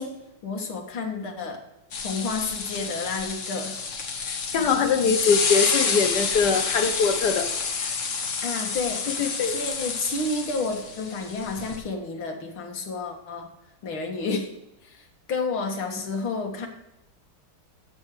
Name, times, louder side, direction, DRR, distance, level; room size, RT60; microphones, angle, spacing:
voice 1, 0.0-1.6 2.0-3.8 8.4-9.0 9.4-13.5 13.8-14.5 14.8-16.7, left 3 dB, 80° left, 3 dB, 2.5 m, -30 dB
sound 1, 1.9-11.8, left 5 dB, 45° left, 1.4 m, -29 dB
voice 2, 4.2-7.5 7.8-7.9 9.1-9.6, left 5 dB, 60° left, 8 dB, 1.5 m, -23 dB
13.5 x 8.4 x 3.2 m, 0.92 s
omnidirectional pair, 2.2 m